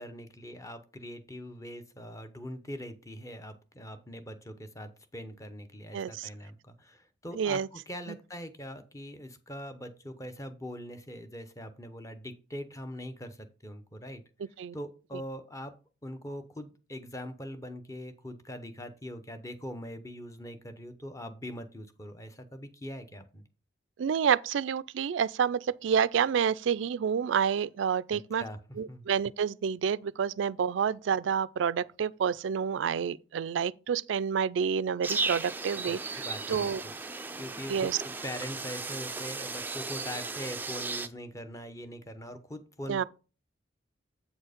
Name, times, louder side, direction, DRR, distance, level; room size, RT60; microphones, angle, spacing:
voice 1, 0.0-14.2 14.7-15.7 16.0-23.4 28.1-28.6 28.9-29.1 35.6-43.0, equal, 15° left, 0.8 m, -42 dB
voice 2, 5.9-6.3 7.3-7.7 14.6-14.8 24.0-28.4 28.8-36.0 36.5-36.8 37.7-38.0 42.9-43.0, right 7 dB, 85° right, 0.3 m, -28 dB
sound 1, 35.0-41.1, right 3 dB, 10° right, 0.4 m, -36 dB
8.2 x 4.5 x 5.0 m
head